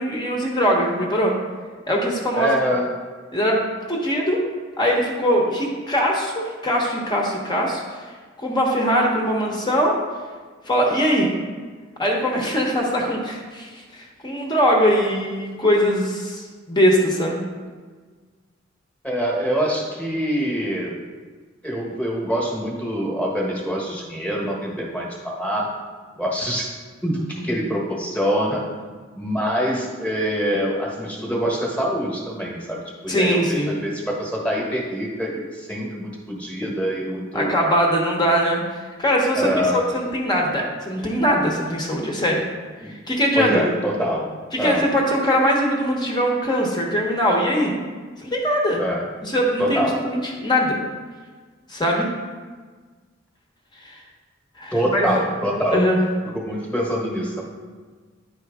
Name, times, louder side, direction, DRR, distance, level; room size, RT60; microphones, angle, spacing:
voice 1, 0.0-1.3 1.9-2.5 3.3-3.6 3.9-4.4 4.8-8.0 8.4-10.0 10.7-11.3 12.0-17.4 27.5-27.6 33.1-33.8 37.3-42.4 42.8-43.7 44.5-47.8 48.2-48.8 49.2-50.8 51.7-52.1 53.8-54.0 54.6-55.1 55.7-56.0, equal, 20° left, -1 dB, 1.0 m, -21 dB
voice 2, 2.4-2.9 19.0-21.0 21.6-25.7 26.2-26.8 27.0-28.7 29.2-37.6 39.3-39.8 42.8-42.9 43.4-44.3 44.6-44.9 48.8-49.0 49.6-50.0 54.7-55.8 56.3-57.4, equal, 5° left, -3 dB, 1.3 m, -25 dB
9.4 x 4.5 x 3.5 m, 1.5 s
head